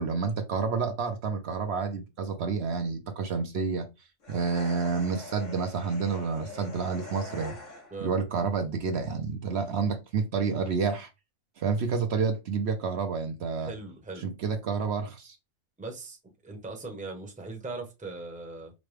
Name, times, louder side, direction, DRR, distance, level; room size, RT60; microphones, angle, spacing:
voice 1, 0.0-3.9 4.3-7.5 8.0-11.1 11.6-13.7 14.2-15.4, right 5 dB, 65° right, 0.8 m, -29 dB
sound 1, 4.2-8.1, left 3 dB, 75° left, 1.6 m, -43 dB
voice 2, 13.5-14.3 15.8-16.2 16.4-18.7, right 3 dB, 5° right, 0.7 m, -39 dB
5.1 x 2.2 x 3.2 m
omnidirectional pair, 1.3 m